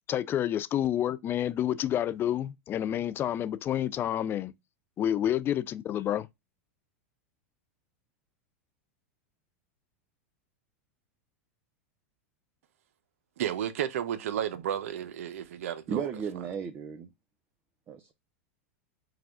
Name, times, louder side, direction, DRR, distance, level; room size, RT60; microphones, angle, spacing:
voice 1, 0.1-4.5 5.0-6.3, left 11 dB, 30° left, 0.4 m, -29 dB
voice 2, 13.4-16.1, right 10 dB, 75° right, 0.6 m, -32 dB
voice 3, 15.9-17.1 17.9-18.1, right 7 dB, 30° right, 0.6 m, -34 dB
4.8 x 2.3 x 3.5 m
hypercardioid pair, 115°, 8 cm